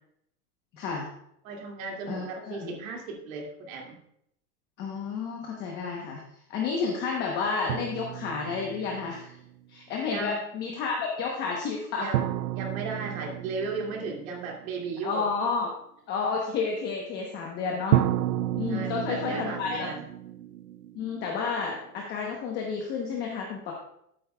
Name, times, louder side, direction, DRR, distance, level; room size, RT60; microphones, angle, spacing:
voice 1, 0.7-1.1 2.1-2.8 4.8-6.2 6.5-9.4 9.7-12.1 15.0-15.7 16.1-18.0 18.6-19.9 20.9-23.7, left 5 dB, 20° left, 0 dB, 0.9 m, -31 dB
voice 2, 1.4-4.0 10.1-10.4 12.0-15.3 18.7-20.0, right 4 dB, 55° right, 0 dB, 2.4 m, -36 dB
sound 1, 7.7-9.5 12.1-15.0 17.9-21.7, right 12 dB, 75° right, 0.7 m, -31 dB
13.0 x 8.7 x 2.3 m, 0.76 s
supercardioid pair, 160°, 47 cm